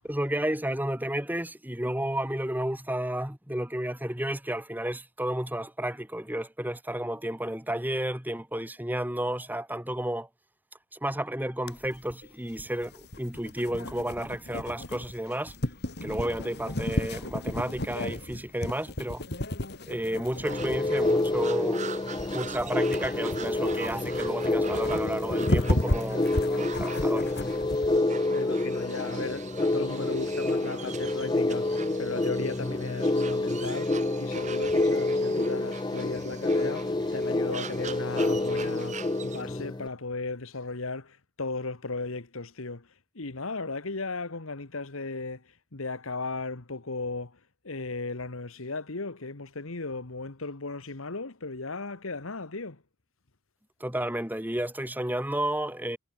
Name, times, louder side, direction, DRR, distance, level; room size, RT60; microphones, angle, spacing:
voice 1, 0.1-10.3 10.9-15.5 16.0-19.2 19.9-21.8 22.3-27.3 53.8-56.0, right 1 dB, 10° right, 2.3 m, -32 dB
sound 1, 11.7-28.0, left 1 dB, 50° left, 2.6 m, -34 dB
sound 2, 20.3-39.4, right 7 dB, 35° right, 3.8 m, -44 dB
sound 3, 20.4-39.9, left 2 dB, 20° left, 0.5 m, -28 dB
voice 2, 28.3-42.9 43.1-47.4 47.6-52.8, left 3 dB, 80° left, 1.6 m, -36 dB
head